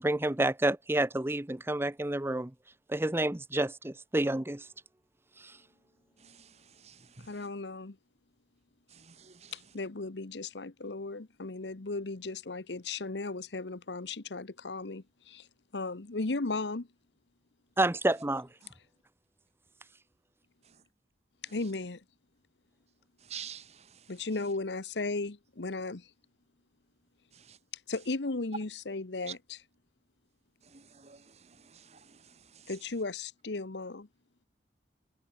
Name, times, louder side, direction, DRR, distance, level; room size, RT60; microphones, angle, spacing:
voice 1, 0.0-2.5 2.9-4.7 5.4-5.6 17.8-18.5, right 1 dB, 15° right, 0.7 m, -29 dB
voice 2, 6.2-7.4 8.9-9.5 23.2-24.1 27.3-27.6 29.3-29.4 30.7-32.7, right 8 dB, 40° right, 1.6 m, -49 dB
voice 3, 7.3-8.0 9.5-15.4 15.7-16.9 21.5-22.0 24.1-26.0 27.9-29.6 32.7-34.1, left 3 dB, 80° left, 1.1 m, -36 dB
head